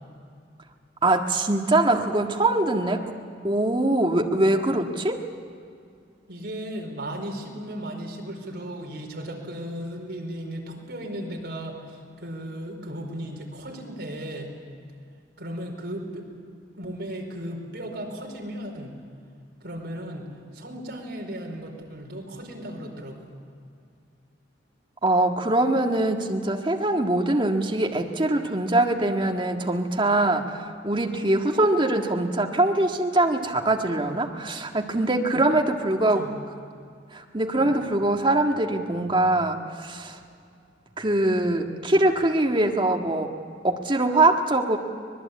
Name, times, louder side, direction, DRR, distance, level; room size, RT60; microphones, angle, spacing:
voice 1, 1.0-3.0 3.4-5.2 25.0-36.3 37.1-40.2 41.0-43.3 43.6-44.8, right 2 dB, 25° right, 2 dB, 1.7 m, -23 dB
voice 2, 6.3-14.5 15.4-16.3 16.7-18.9 19.6-20.3 20.5-23.2 35.3-35.4 36.1-36.4 37.6-37.8, equal, 60° right, 1 dB, 4.7 m, -36 dB
24.5 x 20.0 x 8.5 m, 2.3 s
head